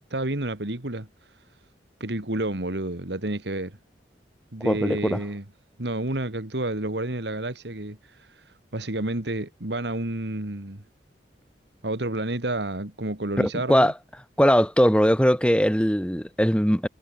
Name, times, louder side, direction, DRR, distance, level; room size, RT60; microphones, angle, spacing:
voice 1, 0.1-1.1 2.0-3.8 4.5-5.4 5.8-8.4 8.7-10.8 11.8-13.9, right 1 dB, 75° right, 2.3 m, -30 dB
voice 2, 4.6-5.2 13.4-13.9 14.4-16.9, equal, 5° left, 4.3 m, -20 dB
head